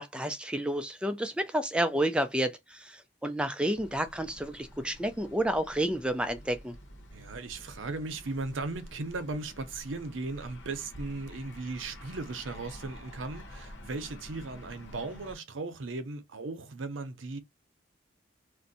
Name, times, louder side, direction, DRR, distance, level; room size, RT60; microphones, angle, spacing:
voice 1, 0.0-6.8, right 1 dB, 5° right, 0.3 m, -30 dB
sound 1, 3.7-15.4, left 1 dB, 75° left, 0.9 m, -48 dB
voice 2, 7.1-17.4, right 3 dB, 90° right, 0.7 m, -37 dB
2.6 x 2.1 x 3.9 m
head